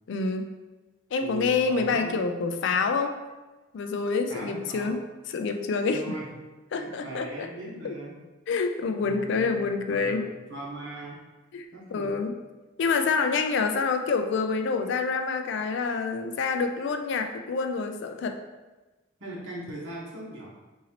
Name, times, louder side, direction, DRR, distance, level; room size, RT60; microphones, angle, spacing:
voice 1, 0.1-0.5 1.1-3.2 3.7-5.0 5.3-6.0 6.7-7.5 7.8-8.0 8.5-10.3 11.5-11.7 11.9-12.3 12.8-18.4, left 4 dB, 65° left, 6 dB, 0.3 m, -27 dB
voice 2, 1.2-2.2 2.7-2.9 4.3-5.0 5.9-6.3 6.7-8.2 9.0-11.2 11.7-12.3 19.2-20.5, right 2 dB, 75° right, -5 dB, 1.1 m, -39 dB
3.9 x 2.7 x 2.9 m, 1.2 s
head